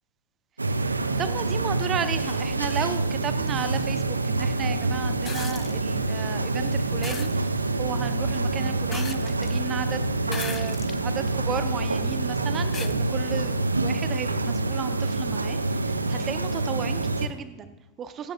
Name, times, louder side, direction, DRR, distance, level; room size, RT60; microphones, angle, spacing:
sound 1, 0.6-17.3, right 2 dB, 80° right, 0.6 m, -26 dB
voice 1, 1.2-18.3, right 7 dB, 25° right, 11 dB, 0.7 m, -34 dB
sound 2, 5.2-5.7 7.0-7.3 8.9-9.5 10.3-11.0 11.7-11.8 12.7-12.9 14.4-14.5, left 7 dB, 20° left, 0.5 m, -37 dB
15.0 x 13.5 x 2.3 m, 1.0 s
figure-of-eight pair, 90°, 0 cm